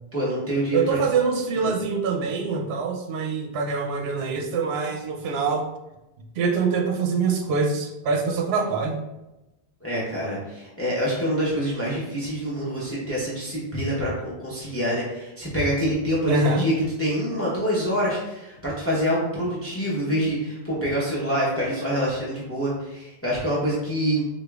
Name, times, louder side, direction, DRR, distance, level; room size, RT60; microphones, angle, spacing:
voice 1, 0.1-1.0 1.6-1.7 9.8-24.2, equal, 15° left, -7 dB, 0.7 m, -26 dB
voice 2, 0.7-5.6 6.4-9.0 16.3-16.7, right 4 dB, 80° right, 2 dB, 0.8 m, -24 dB
5.0 x 2.2 x 2.3 m, 0.98 s
omnidirectional pair, 1.0 m